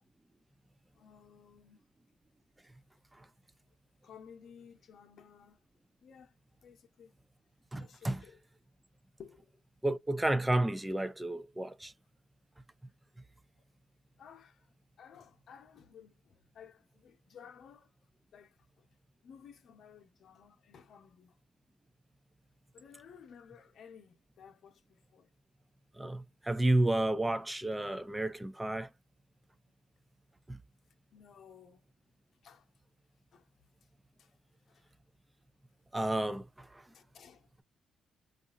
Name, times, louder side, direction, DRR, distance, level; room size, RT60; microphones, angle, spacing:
voice 1, 0.9-1.8 4.0-5.6 6.0-6.3 6.6-7.1 7.8-8.4 9.2-9.5 14.2-14.7 15.0-17.9 18.3-18.9 19.2-21.4 22.7-25.3 31.1-31.9 32.4-32.7 33.3-33.5 34.2-34.3 34.7-34.9 36.9-37.6, left 7 dB, 65° left, 0.8 m, -56 dB
voice 2, 7.7-8.2 9.8-11.9 26.0-28.9 30.5-30.6 35.9-36.8, right 1 dB, 10° right, 0.4 m, -31 dB
2.7 x 2.5 x 2.4 m
cardioid pair, 90°, 0 cm